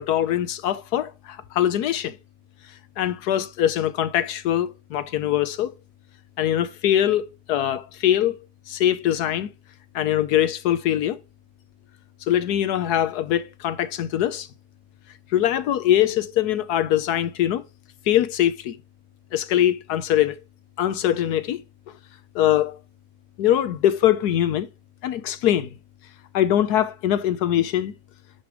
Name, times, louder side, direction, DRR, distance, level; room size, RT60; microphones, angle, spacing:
voice 1, 0.0-2.2 3.0-5.7 6.4-8.4 8.7-9.5 9.9-11.2 12.3-14.5 15.3-17.6 18.1-18.8 19.3-20.4 20.8-21.6 22.3-22.8 23.4-24.7 25.0-25.7 26.3-27.9, left 11 dB, 80° left, 1.3 m, -22 dB
9.6 x 3.3 x 6.1 m
omnidirectional pair, 1.7 m